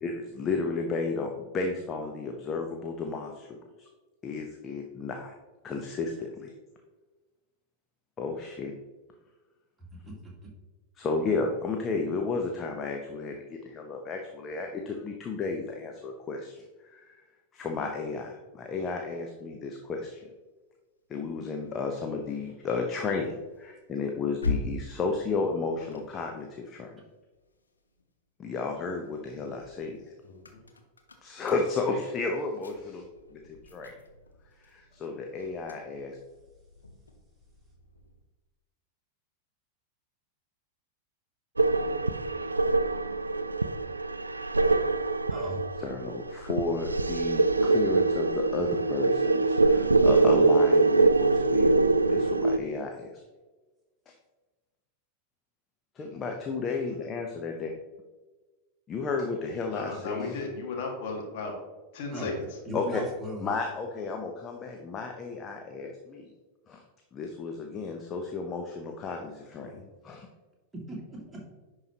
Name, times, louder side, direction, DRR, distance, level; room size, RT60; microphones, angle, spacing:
voice 1, 0.0-3.5 3.8-3.9 4.2-5.3 5.6-6.5 8.2-8.7 11.0-17.2 17.5-20.3 21.1-27.0 28.4-30.0 31.2-33.1 33.3-33.9 34.6-36.2 45.8-51.8 52.1-53.1 54.1-54.2 55.9-57.7 58.9-60.4 62.7-63.0 63.4-66.3 66.7-66.8 67.1-69.7 70.0-70.3, left 4 dB, 25° left, 3 dB, 0.8 m, -33 dB
sound 1, 21.5-28.1 28.5-38.3, left 3 dB, 75° left, 0.9 m, -42 dB
voice 2, 30.2-30.6 59.7-61.5 61.9-62.3 69.6-69.8, left 4 dB, 50° left, 0 dB, 1.8 m, -36 dB
sound 2, 41.6-52.6, right 3 dB, 80° right, 0.3 m, -24 dB
voice 3, 62.7-63.5 70.7-71.5, right 1 dB, 10° right, -3 dB, 2.1 m, -38 dB
10.5 x 4.8 x 2.9 m, 1.2 s
figure-of-eight pair, 90°, 0 cm